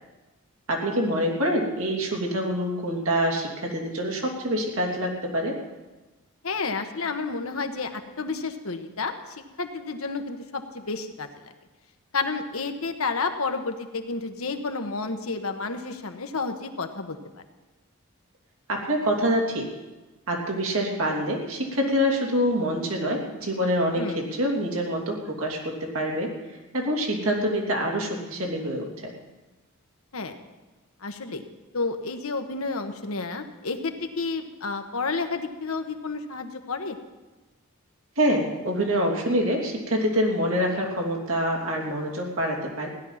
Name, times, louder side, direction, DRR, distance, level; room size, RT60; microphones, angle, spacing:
voice 1, 0.7-5.6 18.7-19.7 20.3-26.3 26.7-29.1 38.2-42.9, equal, 75° right, 0 dB, 3.1 m, -26 dB
voice 2, 6.4-11.3 12.1-17.2 23.9-24.3 30.1-30.3 31.0-31.4 31.7-37.0, left 4 dB, 70° left, 6 dB, 1.2 m, -31 dB
16.5 x 11.0 x 5.8 m, 1.2 s
head